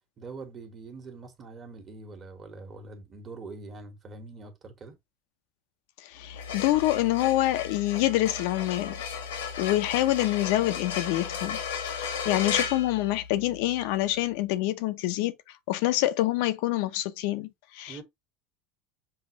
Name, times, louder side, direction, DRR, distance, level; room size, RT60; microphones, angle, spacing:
voice 1, 0.2-5.0 17.9-18.0, right 3 dB, 35° right, 1.4 m, -43 dB
voice 2, 6.0-8.9 9.6-11.6 11.9-15.3 15.7-18.0, left 15 dB, 70° left, 0.5 m, -26 dB
sound 1, 6.2-13.7, left 7 dB, 90° left, 1.2 m, -35 dB
5.5 x 2.4 x 2.9 m
supercardioid pair, 100°, 0 cm